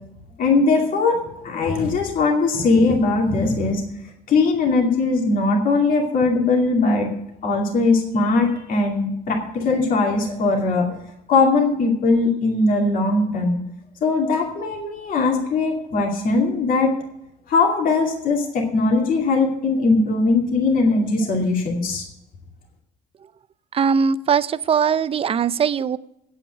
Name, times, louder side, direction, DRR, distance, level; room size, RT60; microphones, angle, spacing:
voice 1, 0.4-3.8 4.3-7.1 7.4-10.9 11.3-13.6 14.0-16.9 17.5-22.0, left 3 dB, 55° left, 0 dB, 2.5 m, -20 dB
voice 2, 23.7-26.0, right 6 dB, 35° right, 16 dB, 0.5 m, -20 dB
8.8 x 8.3 x 7.8 m, 0.80 s
cardioid pair, 110°, 17 cm